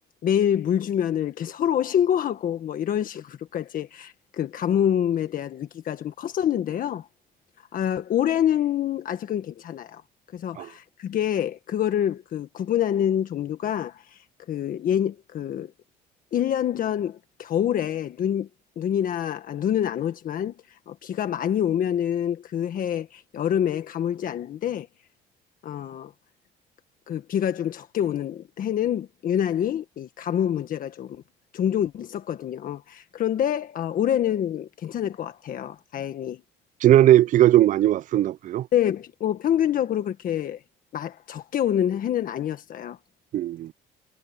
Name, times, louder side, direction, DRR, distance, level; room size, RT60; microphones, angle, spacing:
voice 1, 0.2-7.1 7.7-10.0 10.3-15.7 16.3-18.5 18.8-20.5 20.9-24.9 25.6-26.1 27.1-31.2 31.5-36.4 38.7-40.6 40.9-43.0, left 10 dB, 55° left, 1.5 m, -26 dB
voice 2, 36.8-38.7 43.3-43.7, right 13 dB, 50° right, 0.4 m, -18 dB
cardioid pair, 110°, 17 cm